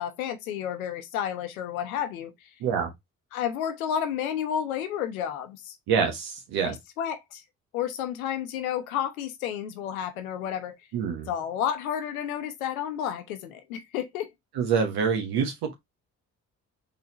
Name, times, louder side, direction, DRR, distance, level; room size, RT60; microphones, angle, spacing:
voice 1, 0.0-2.5 3.3-5.8 6.6-7.4 7.7-10.7 11.3-14.3, left 9 dB, 85° left, 0.8 m, -31 dB
voice 2, 5.9-6.8 10.9-11.3 14.6-15.7, right 6 dB, 65° right, 1.3 m, -26 dB
4.0 x 3.7 x 2.8 m
hypercardioid pair, 40°, 41 cm